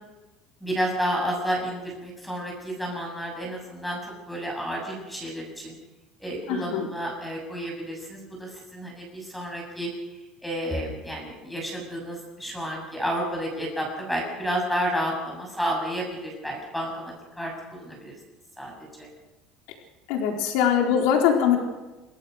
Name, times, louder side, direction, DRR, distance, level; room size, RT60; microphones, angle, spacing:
voice 1, 0.6-5.7 6.2-9.9 10.4-18.1 18.6-18.7 19.0-19.1, equal, 5° left, 0 dB, 7.2 m, -31 dB
voice 2, 6.5-6.9 20.1-21.6, left 8 dB, 80° left, 2 dB, 4.1 m, -22 dB
28.5 x 14.5 x 6.5 m, 1.1 s
cardioid pair, 160°, 0 cm